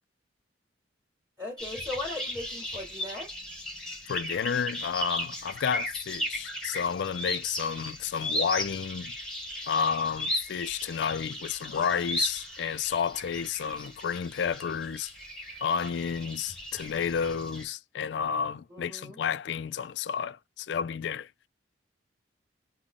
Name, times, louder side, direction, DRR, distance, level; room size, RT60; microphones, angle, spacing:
voice 1, 1.4-3.4 18.7-19.2, left 2 dB, 20° right, 1.8 m, -38 dB
sound 1, 1.6-17.6, left 1 dB, 5° left, 1.2 m, -36 dB
voice 2, 4.1-9.1 9.7-15.1 15.6-21.3, left 7 dB, 70° left, 0.3 m, -31 dB
3.6 x 2.1 x 3.6 m
head